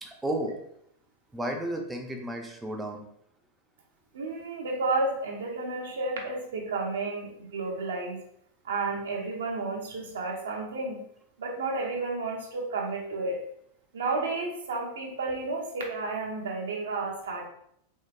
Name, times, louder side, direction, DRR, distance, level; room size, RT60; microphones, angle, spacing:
voice 1, 0.0-0.6 1.3-3.1, right 1 dB, 10° right, 2 dB, 0.5 m, -33 dB
voice 2, 4.1-8.2 8.6-11.0 11.4-13.4 13.9-17.5, right 3 dB, 65° right, 0 dB, 0.5 m, -31 dB
3.0 x 2.8 x 2.3 m, 0.73 s
figure-of-eight pair, 90°, 0 cm